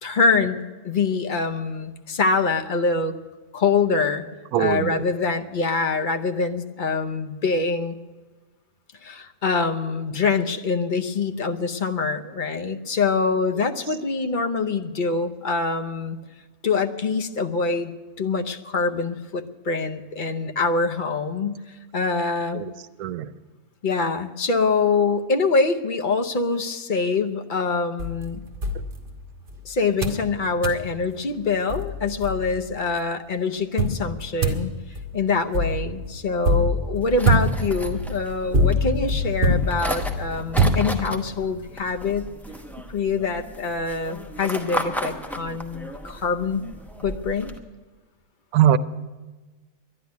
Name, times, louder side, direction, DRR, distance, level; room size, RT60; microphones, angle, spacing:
voice 1, 0.0-3.2 3.5-4.2 4.6-7.9 9.0-16.2 16.6-17.9 18.2-21.6 21.9-22.6 23.8-28.4 29.6-34.7 35.1-42.3 42.9-46.6 47.0-47.5, left 4 dB, 45° left, 5 dB, 0.8 m, -24 dB
voice 2, 4.5-5.1 22.5-22.7 23.0-23.3 48.5-48.8, right 11 dB, 80° right, 14 dB, 1.1 m, -21 dB
sound 1, 28.0-29.6 30.0-30.3 30.6-30.9 31.4-31.5 31.7-32.8 33.8-41.4, equal, 40° right, 1.6 m, -24 dB
sound 2, 37.0-47.6, equal, ahead, 0.7 m, -35 dB
11.5 x 11.0 x 9.4 m, 1.3 s
omnidirectional pair, 1.5 m